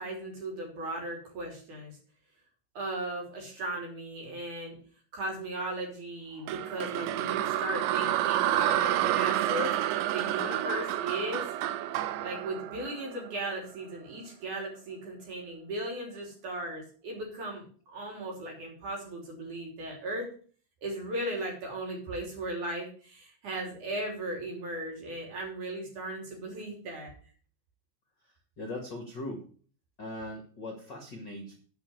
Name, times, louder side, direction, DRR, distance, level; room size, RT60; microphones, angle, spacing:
voice 1, 0.0-1.9 2.7-4.8 5.1-9.7 10.1-11.4 12.2-20.3 20.8-27.1, right 1 dB, 45° right, -1 dB, 4.4 m, -37 dB
sound 1, 6.5-13.6, right 13 dB, 90° right, 3.0 m, -29 dB
voice 2, 28.2-29.4 30.0-31.6, left 1 dB, 90° left, 2 dB, 0.9 m, -40 dB
9.8 x 5.5 x 8.0 m, 0.43 s
omnidirectional pair, 5.1 m